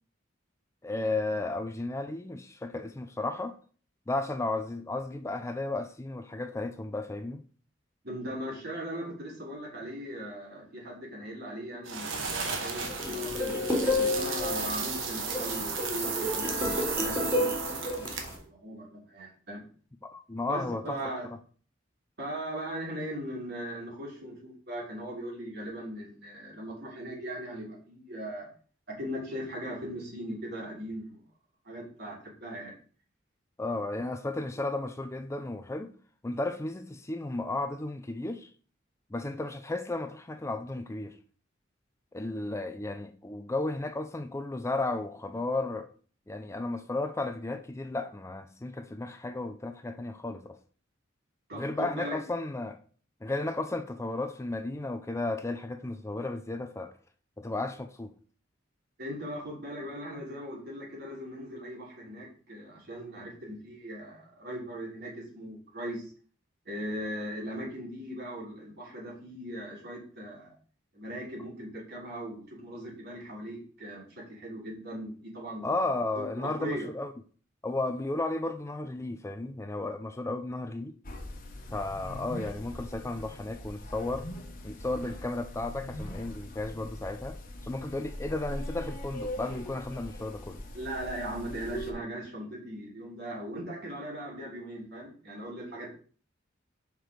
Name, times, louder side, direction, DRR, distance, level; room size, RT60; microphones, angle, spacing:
voice 1, 0.8-3.5 4.1-7.4 20.1-21.0 33.6-35.9 36.2-38.5 39.1-41.1 42.1-45.9 46.3-50.6 51.5-52.8 53.2-56.9 57.4-58.1 75.6-77.1 77.6-80.9 81.7-84.3 84.6-87.4 87.6-90.6, left 2 dB, 15° left, 0.4 m, -34 dB
voice 2, 8.0-19.6 20.5-21.3 22.2-28.5 28.9-31.2 31.6-32.8 51.5-52.2 59.0-66.1 66.6-70.6 70.9-75.7 76.1-76.9 90.7-95.9, equal, 55° right, 2.9 m, -39 dB
sound 1, 11.9-18.4, right 5 dB, 80° right, 1.3 m, -34 dB
sound 2, 12.2-18.3, left 2 dB, 10° right, 2.9 m, -31 dB
sound 3, 81.0-91.9, left 1 dB, 45° left, 1.2 m, -41 dB
5.9 x 4.9 x 5.1 m
head